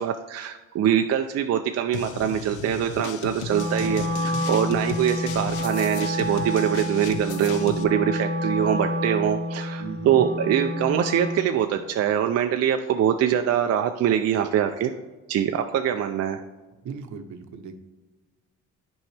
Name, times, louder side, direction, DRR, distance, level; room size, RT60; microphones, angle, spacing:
voice 1, 0.0-14.9 15.3-16.4, right 9 dB, 55° right, 6 dB, 0.5 m, -23 dB
sound 1, 1.9-7.8, left 8 dB, 90° left, 0.6 m, -36 dB
Wind instrument woodwind instrument, 3.5-11.5, left 1 dB, 40° left, 1.3 m, -29 dB
voice 2, 3.8-4.5 9.8-10.3 16.8-17.7, right 6 dB, 70° right, 7 dB, 0.9 m, -37 dB
8.9 x 5.5 x 3.3 m, 1.2 s
cardioid pair, 90°, 30 cm